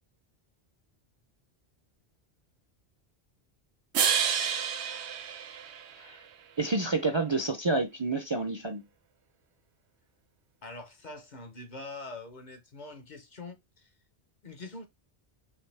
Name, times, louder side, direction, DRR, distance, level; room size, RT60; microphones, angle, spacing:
sound 1, 3.9-6.3, right 7 dB, 90° right, 1.0 m, -29 dB
voice 1, 6.6-8.9, right 3 dB, 35° right, 0.5 m, -29 dB
voice 2, 10.6-13.9 14.4-14.8, left 2 dB, 45° left, 0.9 m, -44 dB
5.0 x 3.0 x 3.3 m
omnidirectional pair, 1.1 m